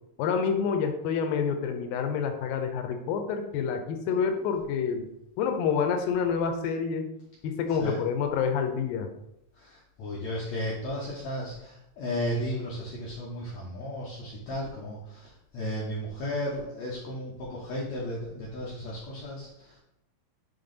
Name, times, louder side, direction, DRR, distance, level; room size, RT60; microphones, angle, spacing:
voice 1, 0.2-5.0 5.4-7.1 7.4-9.1, left 6 dB, 85° left, 5 dB, 2.5 m, -28 dB
voice 2, 4.1-4.5 7.8-8.0 9.6-19.8, equal, 60° left, -5 dB, 2.1 m, -34 dB
9.4 x 3.8 x 3.9 m, 0.84 s
omnidirectional pair, 4.0 m